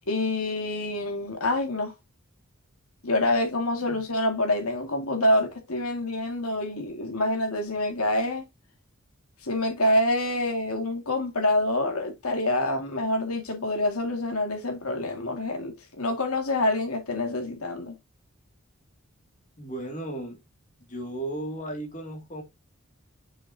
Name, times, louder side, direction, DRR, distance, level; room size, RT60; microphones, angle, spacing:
voice 1, 0.1-1.9 3.0-8.4 9.4-18.0, left 1 dB, 90° left, 2.1 m, -26 dB
voice 2, 19.6-20.4 20.9-22.4, right 1 dB, 35° left, 2.4 m, -35 dB
6.4 x 6.4 x 2.8 m
head